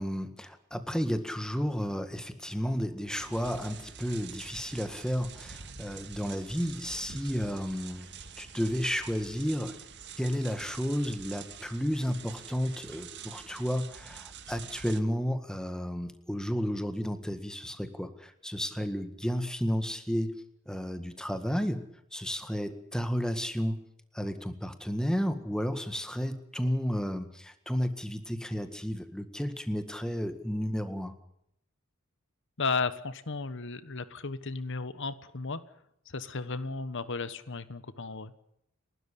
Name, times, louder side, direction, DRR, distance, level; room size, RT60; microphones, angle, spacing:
voice 1, 0.0-8.1 8.4-9.8 10.2-21.8 22.1-23.8 24.1-31.1, equal, 5° left, 9 dB, 1.8 m, -32 dB
sound 1, 3.1-15.0, right 7 dB, 55° right, 1.9 m, -47 dB
voice 2, 32.6-35.6 36.1-38.3, left 4 dB, 60° left, 14 dB, 1.2 m, -34 dB
30.0 x 13.0 x 8.5 m, 0.77 s
head